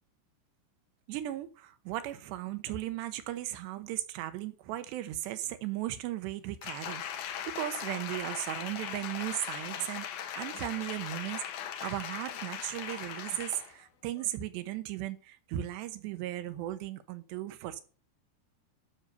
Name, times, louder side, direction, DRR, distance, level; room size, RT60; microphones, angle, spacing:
voice 1, 1.1-7.0 7.5-10.1 10.4-17.8, right 14 dB, 80° right, 3.1 m, -36 dB
Applause, 6.6-13.7 14.2-14.3, left 9 dB, 70° left, 1.9 m, -39 dB
12.5 x 6.6 x 6.6 m
omnidirectional pair, 5.0 m